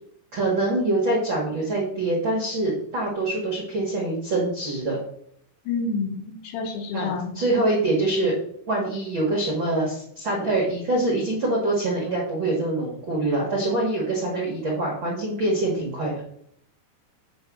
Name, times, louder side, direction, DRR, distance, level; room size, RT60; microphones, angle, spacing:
voice 1, 0.3-5.0 6.9-8.3 8.7-16.1, right 2 dB, 85° right, -3 dB, 1.0 m, -24 dB
voice 2, 5.7-7.3, left 4 dB, 70° left, 2 dB, 3.0 m, -28 dB
8.7 x 3.4 x 6.1 m, 0.70 s
omnidirectional pair, 5.3 m